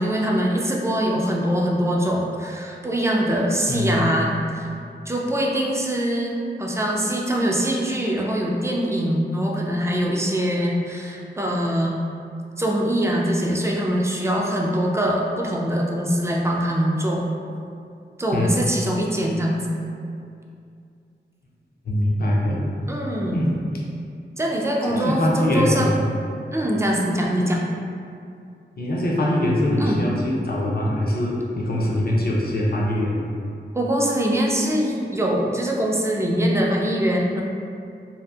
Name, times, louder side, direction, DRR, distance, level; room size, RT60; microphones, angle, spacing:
voice 1, 0.0-4.7 5.1-12.0 12.6-17.3 18.2-19.7 22.9-23.5 24.4-26.0 26.5-27.6 29.8-30.0 33.7-37.4, equal, 15° right, -2 dB, 0.3 m, -23 dB
voice 2, 3.7-4.2 18.3-18.5 21.9-22.6 23.3-23.5 24.8-26.0 28.8-33.2, left 1 dB, 55° left, -3 dB, 0.5 m, -23 dB
2.7 x 2.4 x 2.2 m, 2.4 s
wide cardioid pair, 85°, 19 cm